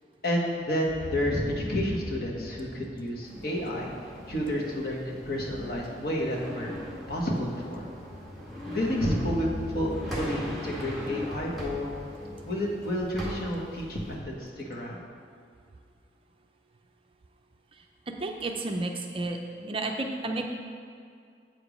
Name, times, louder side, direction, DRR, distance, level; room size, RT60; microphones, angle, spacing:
voice 1, 0.2-3.9 4.3-6.7 7.1-7.8 8.7-11.9 12.4-15.0, equal, 55° left, -3 dB, 1.3 m, -30 dB
sound 1, 0.9-3.8 8.8-12.0, left 1 dB, 30° left, 0.4 m, -40 dB
sound 2, 3.2-14.2, equal, ahead, 1.8 m, -40 dB
voice 2, 18.1-20.5, right 2 dB, 30° right, 3 dB, 0.5 m, -32 dB
7.7 x 5.1 x 5.1 m, 2.3 s
head